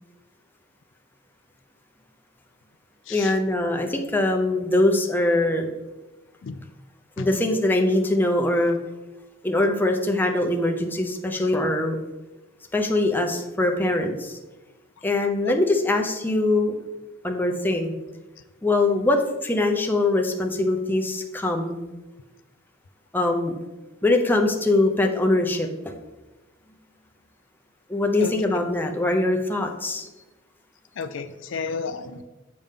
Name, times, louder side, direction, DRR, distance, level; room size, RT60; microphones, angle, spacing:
voice 1, 3.1-5.8 7.2-8.8 9.4-12.0 12.7-14.4 15.0-16.7 17.2-17.9 18.6-21.8 23.1-23.5 24.0-25.9 27.9-30.1, left 2 dB, 10° left, 2 dB, 0.6 m, -22 dB
voice 2, 28.2-28.6 31.0-32.2, left 5 dB, 65° left, 10 dB, 0.4 m, -32 dB
7.3 x 5.2 x 3.6 m, 1.1 s
head